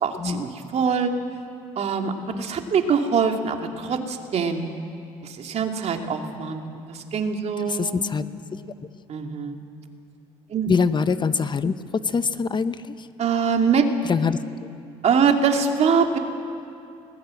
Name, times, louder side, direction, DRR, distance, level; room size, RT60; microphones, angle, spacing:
voice 1, 0.0-1.1 1.8-4.6 5.2-6.6 6.9-8.1 9.1-9.6 10.5-10.7 13.2-13.9 15.0-16.2, right 6 dB, 50° right, 4 dB, 2.6 m, -23 dB
voice 2, 7.7-8.3 10.7-13.1 14.0-14.4, left 5 dB, 35° left, 12 dB, 0.9 m, -24 dB
21.0 x 19.5 x 7.8 m, 2.5 s
supercardioid pair, 65°, 14 cm